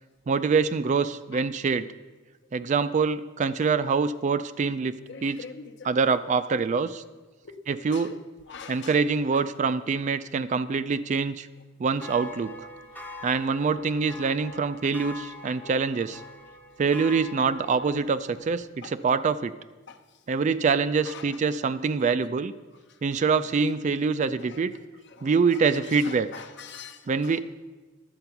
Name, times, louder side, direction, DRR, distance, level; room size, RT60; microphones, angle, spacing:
voice 1, 0.3-1.9 2.5-5.0 5.2-5.4 5.8-7.0 7.7-8.2 8.7-11.5 11.8-12.7 13.2-16.2 16.8-19.5 20.3-22.5 23.0-24.7 25.2-26.3 27.1-27.4, right 5 dB, 35° right, 13 dB, 0.3 m, -25 dB
voice 2, 5.1-5.9 7.4-7.5 7.9-8.1 8.5-9.0 9.3-9.4 15.4-15.5 18.8-18.9 19.9-20.0 21.1-21.4 24.5-24.6 25.1-27.4, left 6 dB, 60° left, 6 dB, 0.9 m, -44 dB
sound 1, 12.0-18.7, left 2 dB, 10° left, 0.7 m, -44 dB
11.0 x 7.8 x 5.8 m, 1.2 s
head